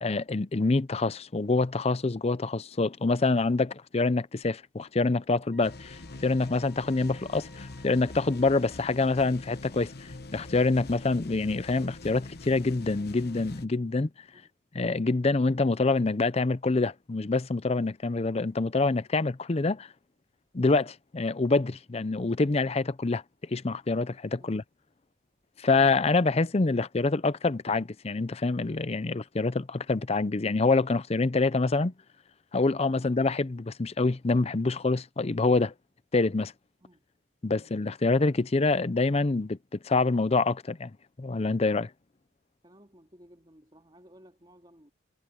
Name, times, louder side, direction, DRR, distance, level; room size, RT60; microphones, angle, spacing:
voice 1, 0.0-14.1 14.7-19.9 20.5-24.6 25.6-31.9 32.5-35.7 36.1-36.5 37.4-40.9 41.2-41.9, left 3 dB, 30° left, 0.5 m, -26 dB
Wind instrument woodwind instrument, 5.5-9.4, right 2 dB, 5° right, 2.7 m, -60 dB
sound 1, 5.6-13.7, left 2 dB, 50° left, 1.0 m, -44 dB
voice 2, 42.6-44.9, equal, 25° right, 2.3 m, -56 dB
head